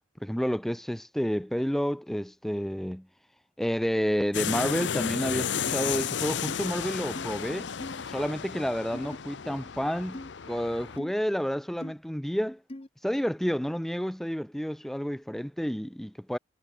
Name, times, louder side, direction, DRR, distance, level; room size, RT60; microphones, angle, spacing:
voice 1, 0.2-3.0 3.6-7.7 8.1-10.2 10.5-12.6 13.0-16.4, equal, ahead, 0.4 m, -30 dB
sound 1, 4.3-11.0, left 7 dB, 75° left, 0.7 m, -33 dB
sound 2, 5.7-5.8 6.5-6.6 7.1-7.3 7.8-8.0 8.9-9.2 10.1-10.3 11.0-11.1 11.8-11.9 12.7-12.9, left 1 dB, 30° left, 0.9 m, -40 dB
head